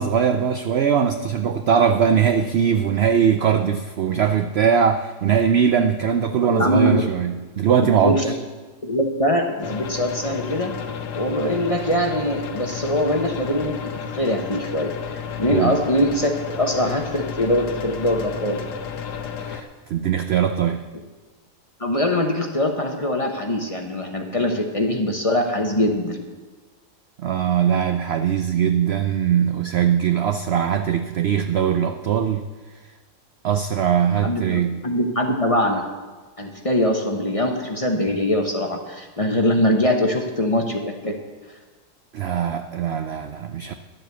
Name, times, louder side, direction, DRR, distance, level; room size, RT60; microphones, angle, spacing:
voice 1, 0.0-8.3 15.5-15.8 19.4-20.9 27.2-32.5 33.4-34.8 42.1-43.7, right 8 dB, 75° right, 8 dB, 0.5 m, -21 dB
voice 2, 6.4-7.0 8.0-8.3 8.8-10.7 11.1-13.8 14.1-14.9 15.4-18.6 21.8-26.2 34.2-35.8 36.4-41.2, left 1 dB, 25° left, 2 dB, 0.8 m, -22 dB
sound 1, 9.6-19.6, left 7 dB, 85° left, 1.4 m, -32 dB
11.5 x 7.6 x 6.9 m, 1.3 s
omnidirectional pair, 1.7 m